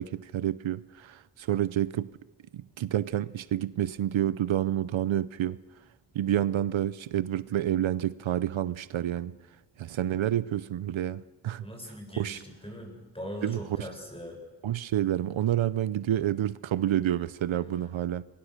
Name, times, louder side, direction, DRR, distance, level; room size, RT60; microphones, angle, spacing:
voice 1, 0.0-2.1 2.5-5.6 6.1-9.3 9.8-11.7 12.2-12.4 13.4-13.9 14.6-18.2, right 11 dB, 75° right, 0.7 m, -29 dB
voice 2, 11.6-14.4, equal, 10° left, 7.3 m, -40 dB
27.0 x 22.5 x 6.6 m
wide cardioid pair, 80°, 47 cm